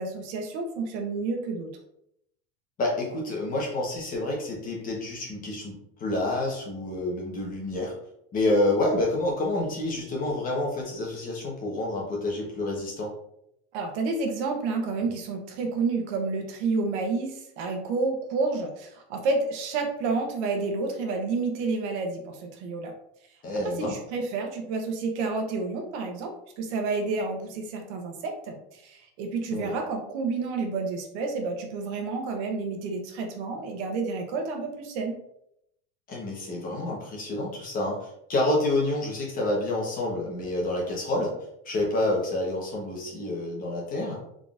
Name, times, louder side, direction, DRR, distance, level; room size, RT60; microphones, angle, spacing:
voice 1, 0.0-1.7 13.7-22.9 23.8-35.2, right 3 dB, 70° right, 3 dB, 0.9 m, -30 dB
voice 2, 2.8-7.9 8.3-13.1 23.4-23.9 29.5-29.7 36.1-41.4 41.6-44.2, left 2 dB, 25° left, -2 dB, 1.0 m, -28 dB
3.8 x 3.7 x 2.4 m, 0.76 s
cardioid pair, 170°, 35 cm